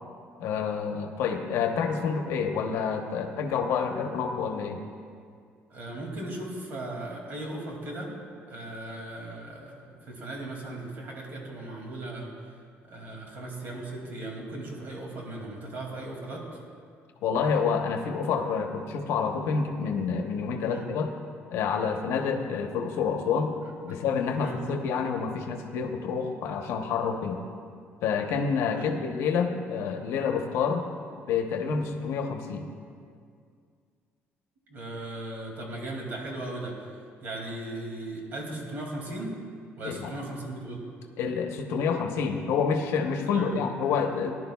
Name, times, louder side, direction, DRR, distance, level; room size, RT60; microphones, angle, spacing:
voice 1, 0.4-4.8 17.2-21.1 21.5-23.6 23.8-27.4 28.0-30.8 31.3-32.7 39.8-40.1 41.2-44.3, left 6 dB, 75° left, 4 dB, 0.9 m, -28 dB
voice 2, 5.7-8.1 8.5-12.3 12.9-16.4 20.6-20.9 22.2-22.4 24.4-24.6 28.7-28.9 34.7-36.7 37.2-39.3 39.8-40.8 43.3-43.7, right 2 dB, 45° right, -1 dB, 2.4 m, -37 dB
18.5 x 11.0 x 2.3 m, 2.2 s
cardioid pair, 165°, 5 cm